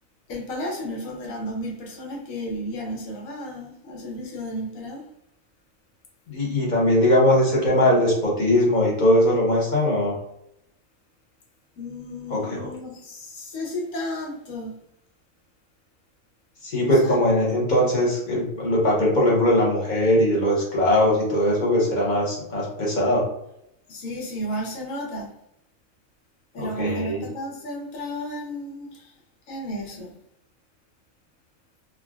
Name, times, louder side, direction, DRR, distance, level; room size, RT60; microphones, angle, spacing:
voice 1, 0.3-5.1 11.8-14.8 16.9-17.4 23.9-25.3 26.5-29.1 29.5-30.1, equal, 75° left, -1 dB, 1.2 m, -33 dB
voice 2, 6.3-10.2 12.3-12.7 16.6-23.3 26.6-27.2, left 1 dB, 40° left, -4 dB, 0.9 m, -20 dB
3.6 x 2.2 x 2.3 m, 0.77 s
omnidirectional pair, 1.4 m